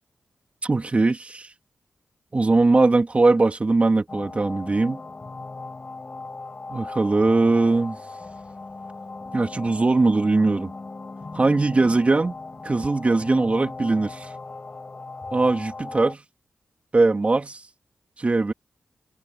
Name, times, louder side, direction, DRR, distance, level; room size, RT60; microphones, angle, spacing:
voice 1, 0.6-1.5 2.3-5.0 6.7-8.0 9.3-10.7 11.3-12.3 12.6-14.3 15.3-16.2 16.9-17.6 18.2-18.5, right 3 dB, 40° right, 3.6 m, -20 dB
sound 1, 4.1-16.1, left 3 dB, 40° left, 8.0 m, -38 dB
cardioid pair, 50°, 3 cm